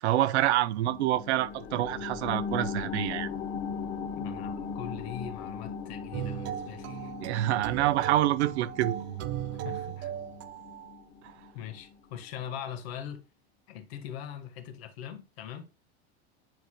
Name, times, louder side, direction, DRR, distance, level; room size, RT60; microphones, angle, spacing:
voice 1, 0.0-3.3 7.2-9.0, right 14 dB, 80° right, 0.8 m, -27 dB
sound 1, 0.9-12.0 12.4-12.5, left 6 dB, 45° left, 1.1 m, -39 dB
voice 2, 4.1-7.1 9.5-10.1 11.5-13.2 13.7-15.7, left 9 dB, 65° left, 1.5 m, -41 dB
sound 2, 6.1-11.0, right 11 dB, 35° right, 0.6 m, -37 dB
9.3 x 4.8 x 2.3 m
supercardioid pair, 145°, 33 cm